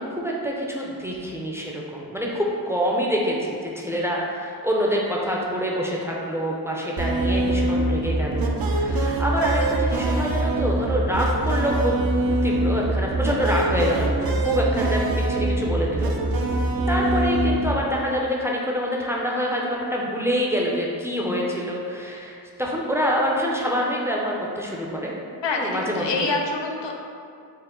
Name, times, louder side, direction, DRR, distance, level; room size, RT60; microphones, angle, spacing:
voice 1, 0.0-12.1 12.4-16.1 16.9-25.1 25.6-26.3, equal, 5° right, -3 dB, 0.5 m, -26 dB
sound 1, 7.0-17.7, right 2 dB, 55° right, 0.5 m, -23 dB
voice 2, 25.4-26.9, left 3 dB, 85° left, 1 dB, 0.5 m, -26 dB
4.5 x 2.0 x 3.7 m, 2.3 s
wide cardioid pair, 50°, 42 cm